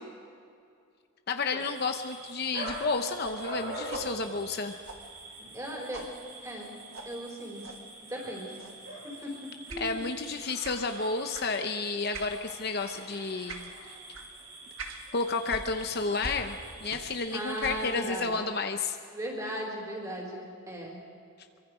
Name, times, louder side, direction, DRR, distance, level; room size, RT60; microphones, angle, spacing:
voice 1, 1.3-4.7 9.8-13.7 15.1-19.0, left 4 dB, 45° left, 6 dB, 0.8 m, -31 dB
sound 1, 1.5-18.0, right 2 dB, 85° right, 6.9 m, -44 dB
sound 2, 2.6-5.7 5.9-6.2 6.9-7.1 7.6-7.8 8.6-8.9 9.7-9.9 10.6-10.9 11.3-11.5 12.1-12.4 12.8-13.0 13.5-13.7 14.1-14.3 14.8-15.0 15.5-17.2 17.5-17.9, right 3 dB, 65° right, 2.0 m, -44 dB
voice 2, 5.4-6.0 6.4-6.7 7.0-7.6 8.0-8.6 9.2-9.3 9.7-10.1 17.3-18.4 19.1-21.0, right 1 dB, 15° right, -2 dB, 4.6 m, -37 dB
24.5 x 24.0 x 5.0 m, 2.4 s
head